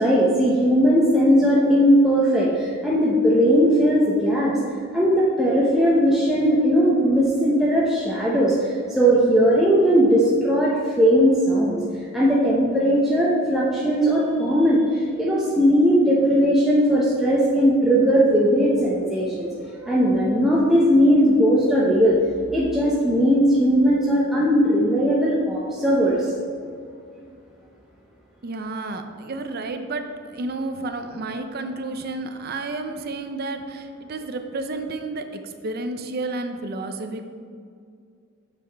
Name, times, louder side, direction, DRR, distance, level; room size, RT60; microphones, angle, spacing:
voice 1, 0.0-4.6 4.9-11.8 12.1-19.5 19.8-22.2 22.5-26.3, equal, ahead, -6 dB, 0.7 m, -18 dB
voice 2, 28.4-37.2, right 2 dB, 50° right, 7 dB, 0.5 m, -31 dB
6.8 x 6.2 x 3.4 m, 2.3 s
head